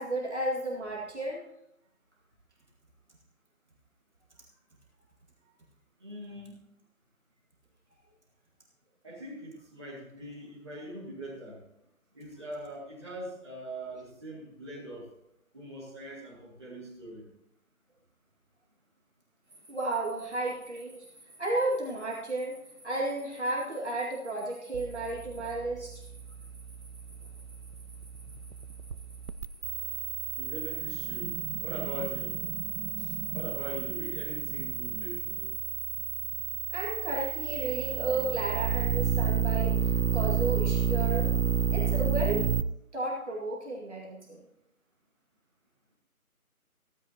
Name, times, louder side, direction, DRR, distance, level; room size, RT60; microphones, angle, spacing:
voice 1, 0.0-1.4 19.7-21.1 21.4-22.6 22.8-26.0 33.0-33.1 36.7-41.3 41.7-42.5 42.9-44.4, right 2 dB, 50° right, -3 dB, 2.4 m, -33 dB
voice 2, 6.0-6.6 9.0-11.6 12.1-15.1 15.5-17.2 28.2-28.3 30.4-32.4 33.3-35.5, right 1 dB, 20° right, -8 dB, 2.2 m, -42 dB
sound 1, 19.4-36.2, right 1 dB, ahead, 5.0 m, -56 dB
sound 2, 24.7-42.6, right 7 dB, 80° right, 0.8 m, -31 dB
15.5 x 15.0 x 2.9 m, 0.80 s
figure-of-eight pair, 175°, 44 cm